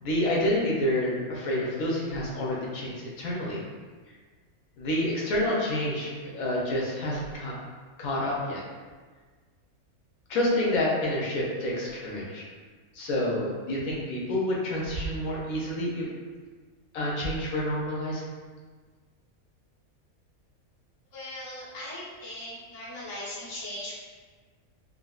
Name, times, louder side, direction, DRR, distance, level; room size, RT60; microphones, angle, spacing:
voice 1, 0.0-3.6 4.8-7.5 8.0-8.6 10.3-12.4 12.9-16.1 16.9-18.2, left 1 dB, 75° left, -4 dB, 1.1 m, -28 dB
voice 2, 21.1-23.9, left 1 dB, 25° left, -8 dB, 0.5 m, -39 dB
3.7 x 2.0 x 2.3 m, 1.5 s
omnidirectional pair, 1.5 m